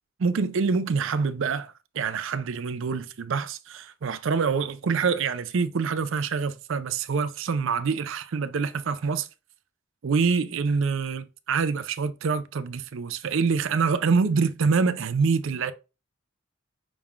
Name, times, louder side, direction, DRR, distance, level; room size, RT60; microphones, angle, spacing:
voice 1, 0.2-9.3 10.0-15.7, right 5 dB, 60° right, 0.4 m, -26 dB
5.9 x 3.6 x 2.4 m
head